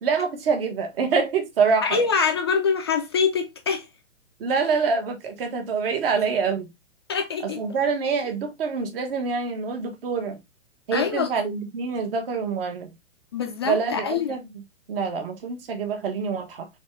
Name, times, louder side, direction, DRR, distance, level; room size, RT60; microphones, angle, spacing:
voice 1, 0.0-2.0 4.4-6.7 7.4-10.4 10.9-12.9 13.6-14.6 14.9-16.7, right 5 dB, 50° right, 1.5 m, -26 dB
voice 2, 1.8-3.9 7.1-7.6 10.9-11.3 13.3-14.3, left 6 dB, 25° left, 0.3 m, -24 dB
4.2 x 3.5 x 3.2 m
hypercardioid pair, 130°, 37 cm